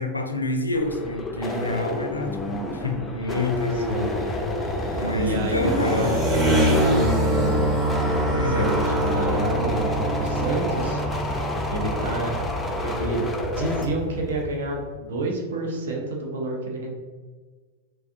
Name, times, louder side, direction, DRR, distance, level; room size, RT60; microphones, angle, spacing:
voice 1, 0.0-3.9 4.9-6.1 8.3-8.7, left 2 dB, 80° left, 5 dB, 0.4 m, -27 dB
sound 1, 0.7-13.9, left 1 dB, 15° left, 0.4 m, -31 dB
sound 2, 3.2-14.8, equal, 15° right, 1.0 m, -26 dB
voice 2, 3.7-4.1 5.1-7.8 8.3-12.3 12.8-13.2 13.6-16.9, right 2 dB, 60° right, 0 dB, 0.7 m, -29 dB
3.4 x 3.2 x 2.5 m, 1.4 s
figure-of-eight pair, 90°, 0 cm